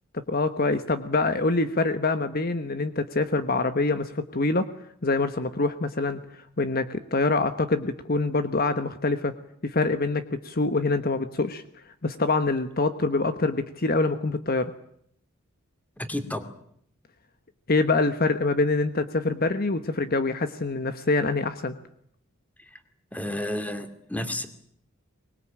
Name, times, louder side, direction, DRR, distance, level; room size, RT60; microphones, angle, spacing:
voice 1, 0.3-4.7 5.0-9.3 9.6-11.6 12.0-14.7 17.7-21.7, left 3 dB, 45° left, 10 dB, 1.2 m, -25 dB
voice 2, 16.0-16.5 22.6-22.8 23.1-24.5, left 1 dB, 5° left, 9 dB, 2.4 m, -32 dB
24.0 x 21.0 x 8.8 m, 0.69 s
head